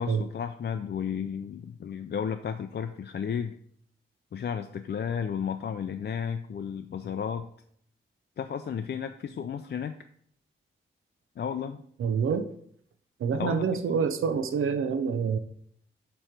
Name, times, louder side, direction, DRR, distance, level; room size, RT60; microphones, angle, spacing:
voice 1, 0.0-3.5 4.3-7.5 8.4-10.0 11.4-11.8 13.4-14.1, left 7 dB, 55° left, 7 dB, 0.4 m, -33 dB
voice 2, 12.0-12.5 13.2-15.4, right 6 dB, 85° right, 10 dB, 0.6 m, -27 dB
7.1 x 3.1 x 4.9 m, 0.64 s
cardioid pair, 60°, 21 cm